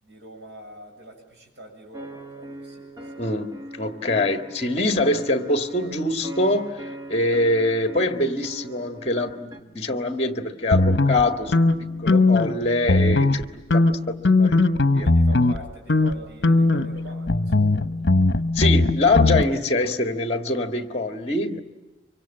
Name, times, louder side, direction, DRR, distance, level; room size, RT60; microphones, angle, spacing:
voice 1, 0.0-3.2 15.0-17.9, right 1 dB, 75° right, 1 dB, 7.5 m, -44 dB
sound 1, 1.9-9.6, right 1 dB, 20° right, 1.7 m, -40 dB
voice 2, 3.2-6.7 7.1-11.5 12.0-13.5 14.4-14.6 14.9-15.1 18.5-21.6, left 2 dB, 35° left, 7 dB, 1.7 m, -24 dB
sound 2, 10.7-12.6 12.8-13.4 13.7-15.6 15.9-16.1 16.4-19.4, left 2 dB, 65° left, 1.0 m, -19 dB
25.0 x 24.5 x 8.8 m, 1.1 s
head